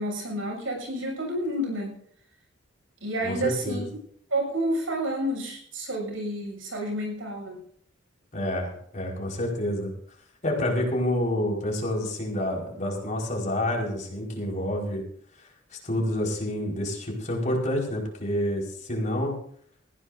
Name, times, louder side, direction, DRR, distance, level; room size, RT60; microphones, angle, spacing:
voice 1, 0.0-1.9 3.0-3.8 4.3-7.6, right 1 dB, 85° right, 1 dB, 7.3 m, -29 dB
voice 2, 3.2-3.8 8.3-9.9 10.4-15.0 15.7-19.3, left 1 dB, 40° left, -1 dB, 5.0 m, -28 dB
20.0 x 15.5 x 2.7 m, 0.63 s
head